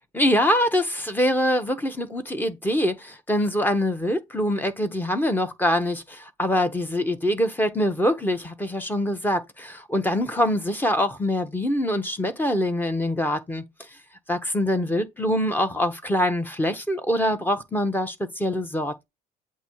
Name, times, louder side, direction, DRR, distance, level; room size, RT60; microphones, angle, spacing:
voice 1, 0.1-13.6 14.3-19.1, left 1 dB, 10° left, 1.1 m, -24 dB
7.9 x 2.8 x 4.6 m
cardioid pair, 110°, 17 cm